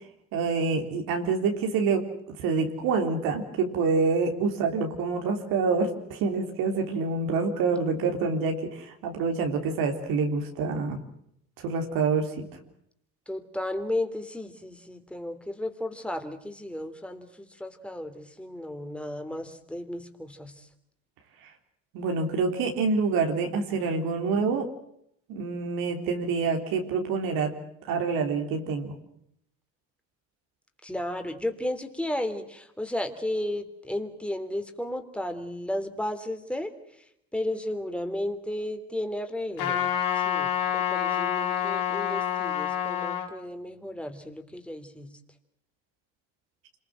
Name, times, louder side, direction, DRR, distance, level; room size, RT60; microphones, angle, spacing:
voice 1, 0.3-2.1 2.4-11.0 11.6-12.6 21.9-24.7 25.3-27.5 27.9-29.0, right 4 dB, 75° right, 3 dB, 3.7 m, -27 dB
voice 2, 13.3-20.7 30.8-36.7 37.3-39.9 40.1-45.2, left 1 dB, 5° left, 6 dB, 3.4 m, -34 dB
Trumpet, 39.6-43.3, left 9 dB, 70° left, 4.6 m, -27 dB
26.5 x 21.0 x 7.7 m, 0.74 s
supercardioid pair, 75°, 35 cm